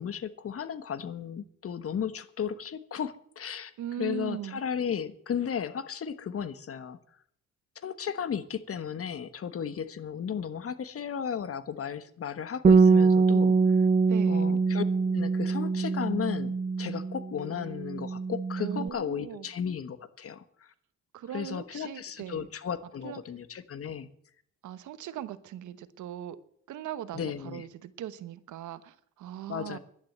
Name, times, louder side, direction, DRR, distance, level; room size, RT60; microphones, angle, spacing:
voice 1, 0.0-3.7 4.0-7.0 7.7-13.8 14.3-14.8 15.1-20.7 21.3-24.1 27.1-27.6 29.5-29.8, left 7 dB, 50° left, 13 dB, 1.3 m, -35 dB
voice 2, 3.8-4.6 14.1-14.4 18.6-19.5 21.1-22.5 23.0-23.2 24.6-26.4 26.7-29.8, right 11 dB, 75° right, 14 dB, 1.2 m, -39 dB
Bass guitar, 12.6-17.3 17.6-18.9, right 4 dB, 30° right, 0.7 m, -24 dB
11.5 x 10.5 x 8.0 m, 0.64 s
cardioid pair, 90°, 30 cm